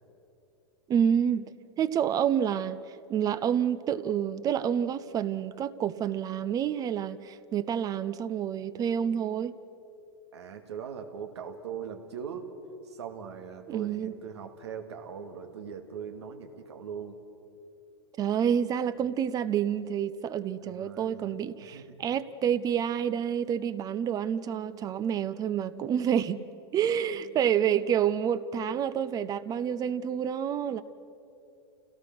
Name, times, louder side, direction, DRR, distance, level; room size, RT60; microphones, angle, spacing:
voice 1, 0.9-9.5 13.7-14.1 18.2-30.8, right 8 dB, 25° right, 0.6 m, -28 dB
voice 2, 10.3-12.5 12.8-17.2 19.0-19.1 20.6-22.0, right 7 dB, 90° right, 2.2 m, -41 dB
27.5 x 17.5 x 6.1 m
hypercardioid pair, 130°, 14 cm